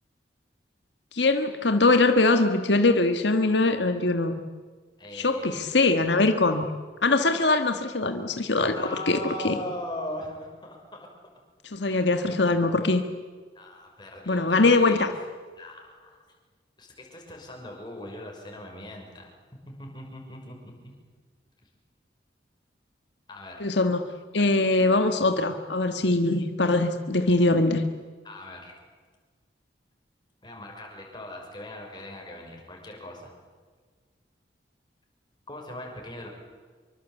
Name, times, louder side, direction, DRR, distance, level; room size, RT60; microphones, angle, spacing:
voice 1, 1.1-4.3 5.1-6.6 7.0-8.7 9.1-9.2 9.4-9.5 11.7-13.0 14.3-15.1 23.6-24.0 24.3-27.8, left 2 dB, 80° left, 7 dB, 1.6 m, -22 dB
voice 2, 5.0-5.7 8.6-11.1 13.5-15.1 15.6-16.2 16.8-19.3 19.7-20.9 23.3-23.7 28.2-28.7 30.4-33.3 35.5-36.3, left 1 dB, 25° left, 1 dB, 6.1 m, -40 dB
26.0 x 24.0 x 8.3 m, 1.6 s
head